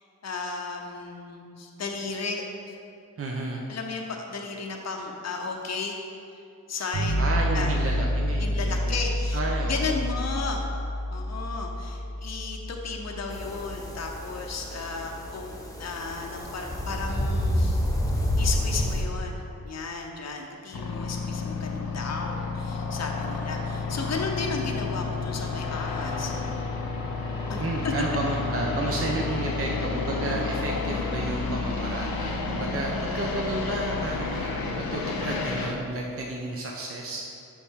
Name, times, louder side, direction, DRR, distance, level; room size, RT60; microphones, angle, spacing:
voice 1, 0.0-2.4 3.7-6.0 6.7-7.2 7.5-7.8 8.4-10.6 11.1-15.5 15.8-17.8 18.1-26.3 27.5-27.9, left 4 dB, 50° left, 1 dB, 0.7 m, -34 dB
voice 2, 3.2-3.6 7.2-9.0 9.3-10.0 27.6-37.2, right 2 dB, 40° right, -1 dB, 0.7 m, -32 dB
sound 1, 6.9-16.8, equal, 85° right, 1.4 m, -30 dB
sound 2, 13.3-19.0, left 1 dB, 10° left, 1.0 m, -29 dB
sound 3, 20.7-35.7, left 4 dB, 80° left, 0.8 m, -31 dB
7.1 x 5.6 x 3.6 m, 2.6 s
cardioid pair, 65°, 35 cm